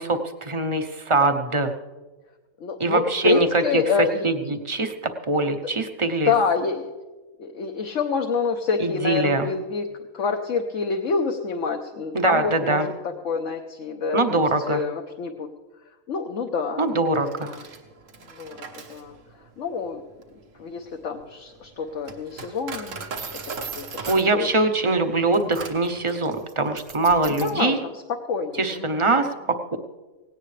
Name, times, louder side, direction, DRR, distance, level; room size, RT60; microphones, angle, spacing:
voice 1, 0.0-1.7 2.8-3.8 4.2-6.3 8.8-9.5 12.1-12.9 14.1-14.8 16.8-17.5 24.1-27.8 28.6-29.8, right 2 dB, 25° right, 7 dB, 0.8 m, -23 dB
voice 2, 2.6-4.3 6.2-6.9 7.4-9.9 10.1-13.0 13.2-15.5 16.1-17.6 18.4-18.6 18.9-19.1 19.6-20.0 20.6-23.0 23.8-23.9 24.3-24.5 27.3-27.9 28.3-29.1, left 5 dB, 65° left, 2 dB, 1.3 m, -27 dB
Coin (dropping), 17.1-27.7, right 4 dB, 65° right, 1.6 m, -39 dB
18.5 x 17.0 x 3.3 m, 1.2 s
omnidirectional pair, 1.5 m